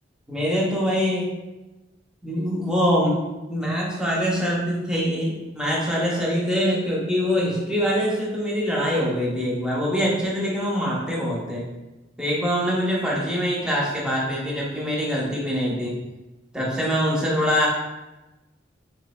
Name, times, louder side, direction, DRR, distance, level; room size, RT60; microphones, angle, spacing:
voice 1, 0.3-1.3 2.2-3.2 3.5-11.6 12.2-15.9 16.5-17.7, equal, 5° right, -5 dB, 0.7 m, -24 dB
3.5 x 3.1 x 2.2 m, 1.1 s
head